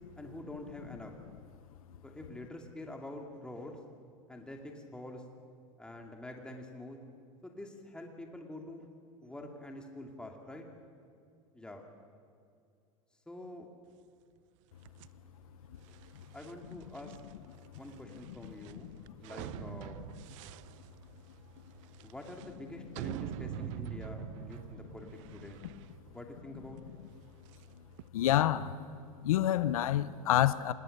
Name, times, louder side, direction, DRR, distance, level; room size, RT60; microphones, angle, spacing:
voice 1, 0.2-1.1 2.0-3.8 4.3-5.2 5.8-7.0 7.4-8.9 9.2-10.6 11.5-11.8 13.3-13.7 16.3-17.2 17.7-20.0 22.0-25.6 26.1-26.8, left 1 dB, 5° left, 2 dB, 2.6 m, -46 dB
sound 1, 14.8-28.1, right 14 dB, 65° right, 0.7 m, -46 dB
voice 2, 28.1-28.9 29.2-30.7, left 12 dB, 85° left, 16 dB, 0.8 m, -28 dB
25.5 x 20.5 x 6.7 m, 2.3 s
hypercardioid pair, 115°, 18 cm